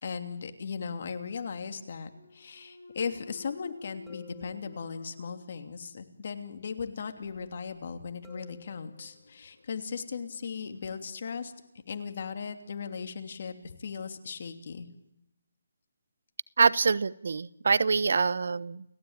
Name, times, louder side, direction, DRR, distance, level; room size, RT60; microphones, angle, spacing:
voice 1, 0.0-11.5 11.9-14.9, left 5 dB, 50° left, 7 dB, 2.9 m, -37 dB
Thump thud, 2.0-6.0 6.5-11.2, left 3 dB, 80° left, 3.5 m, -53 dB
sound 1, 4.1-5.2 8.2-9.3, left 8 dB, 5° right, 5.0 m, -53 dB
voice 2, 16.6-18.9, right 4 dB, 65° right, 20 dB, 0.9 m, -25 dB
30.0 x 16.0 x 9.0 m, 0.81 s
hypercardioid pair, 160°, 0 cm